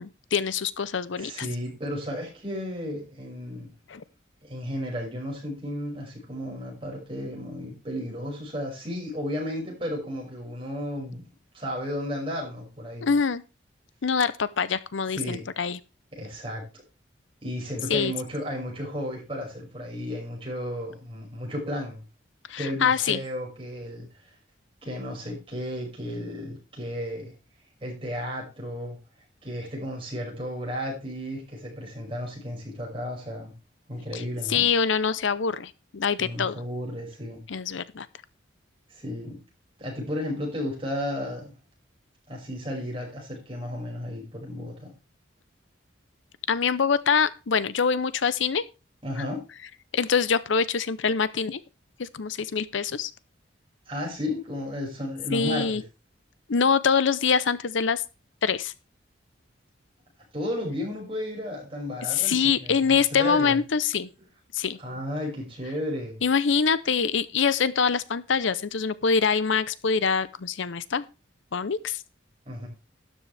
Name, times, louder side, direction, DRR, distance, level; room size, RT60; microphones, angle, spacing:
voice 1, 0.0-1.5 3.9-4.0 13.0-13.4 14.0-15.8 17.9-18.1 22.5-23.2 34.1-34.2 34.5-36.6 37.5-38.1 46.5-48.6 49.2-49.3 49.9-51.6 52.0-53.1 55.3-55.8 56.5-58.0 58.4-58.7 62.1-64.1 64.5-64.8 66.2-71.0 71.5-72.0, left 6 dB, 75° left, 0.6 m, -24 dB
voice 2, 1.2-3.7 4.4-11.2 11.5-13.1 15.1-15.4 16.1-16.7 17.4-22.0 22.6-24.1 24.8-27.3 27.8-29.0 29.4-33.5 33.9-34.6 36.2-37.4 38.9-39.4 39.8-41.5 42.3-44.9 49.0-49.4 53.9-55.8 60.3-63.6 64.8-66.2 72.5-72.7, equal, 25° right, 5.8 m, -33 dB
12.5 x 10.0 x 3.4 m
head